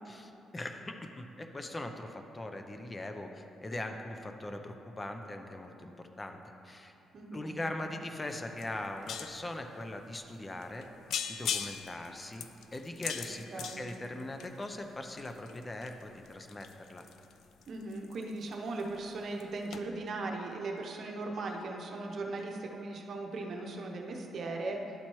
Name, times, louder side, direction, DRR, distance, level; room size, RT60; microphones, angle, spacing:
voice 1, 0.0-6.4 6.6-6.9 7.3-10.9 11.3-17.0, left 1 dB, 20° left, 5 dB, 0.5 m, -41 dB
voice 2, 7.1-7.6 13.3-13.9 17.7-24.8, right 3 dB, 55° right, 2 dB, 0.8 m, -38 dB
sound 1, 8.3-8.4 8.6-9.5 10.1-10.2 10.6-10.8 11.1-14.6 15.1-18.5 18.8-19.1 19.4-19.5 19.7-19.8, left 8 dB, 75° left, 0.3 m, -39 dB
11.5 x 4.3 x 3.0 m, 2.9 s
cardioid pair, 90°, 0 cm